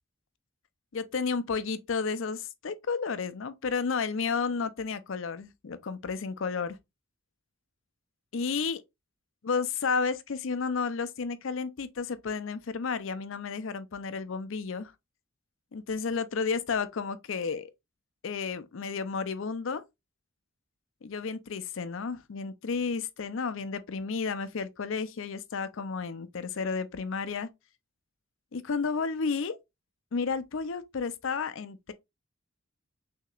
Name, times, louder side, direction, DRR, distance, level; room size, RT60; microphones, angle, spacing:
voice 1, 0.9-6.8 8.3-8.8 9.4-14.9 15.7-17.7 18.2-19.8 21.0-27.5 28.5-29.6 30.1-31.9, left 5 dB, 65° left, 0.5 m, -32 dB
6.2 x 2.9 x 2.3 m
head